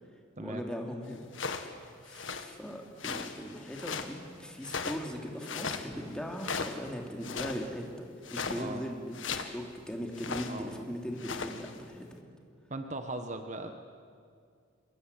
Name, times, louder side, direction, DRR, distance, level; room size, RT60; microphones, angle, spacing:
voice 1, 0.4-1.3 1.7-12.1, equal, 5° left, 2 dB, 3.0 m, -39 dB
sound 1, 1.3-1.7 2.1-2.5 3.0-4.2 4.6-5.1 5.4-5.9 6.4-6.9 7.2-7.7 8.2-8.7 9.1-9.6 10.2-10.6 11.1-11.7, left 5 dB, 70° left, 1.8 m, -37 dB
voice 2, 12.7-13.7, right 2 dB, 35° right, 6 dB, 1.4 m, -38 dB
25.5 x 22.5 x 9.8 m, 2.2 s
head